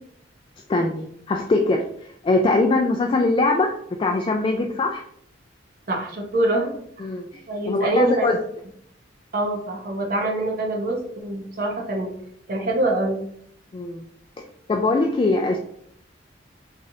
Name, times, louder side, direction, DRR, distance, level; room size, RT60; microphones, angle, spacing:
voice 1, 0.7-5.0 7.0-7.4 7.7-8.4 13.7-14.0 14.7-15.6, left 2 dB, 30° left, 3 dB, 0.3 m, -22 dB
voice 2, 5.9-6.7 7.0-7.1 7.5-8.3 9.3-12.1 12.5-13.2, right 2 dB, 50° right, -1 dB, 0.8 m, -24 dB
3.9 x 3.1 x 2.7 m, 0.67 s
head